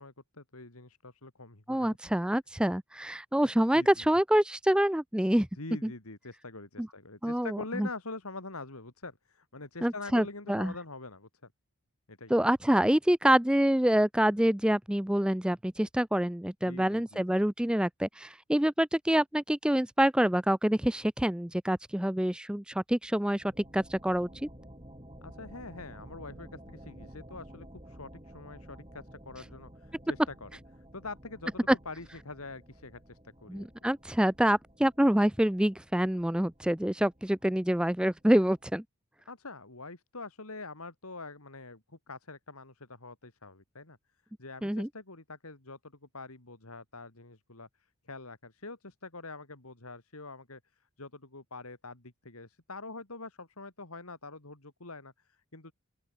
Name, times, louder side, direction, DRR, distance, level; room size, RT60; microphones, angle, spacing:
voice 1, 0.0-2.0 3.7-4.1 5.5-11.3 12.1-12.3 16.6-17.4 25.2-30.5 30.8-33.7 39.3-44.0 44.4-47.7 48.0-50.6 51.0-55.7, left 3 dB, 80° left, 3.3 m, -45 dB
voice 2, 1.7-5.5 6.8-6.9 7.2-7.9 9.8-10.7 12.3-23.4 23.7-24.3 33.5-38.8 44.6-44.9, right 1 dB, 5° right, 0.4 m, -26 dB
sound 1, 23.4-38.8, equal, 25° right, 7.0 m, -52 dB
open air
head